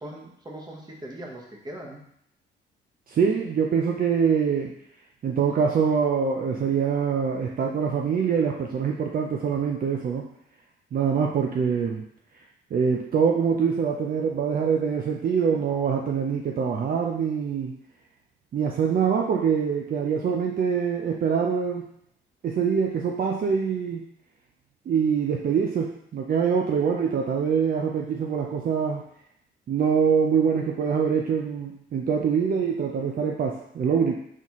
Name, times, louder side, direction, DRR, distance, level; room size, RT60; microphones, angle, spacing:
voice 1, 0.0-2.0, right 1 dB, 20° right, -1 dB, 1.1 m, -40 dB
voice 2, 3.1-4.7 5.2-10.3 10.9-12.0 12.7-17.8 18.5-21.8 22.4-24.0 24.9-29.0 29.7-34.2, right 6 dB, 45° right, 1 dB, 0.5 m, -24 dB
4.1 x 4.0 x 3.0 m, 0.73 s
cardioid pair, 90°, 20 cm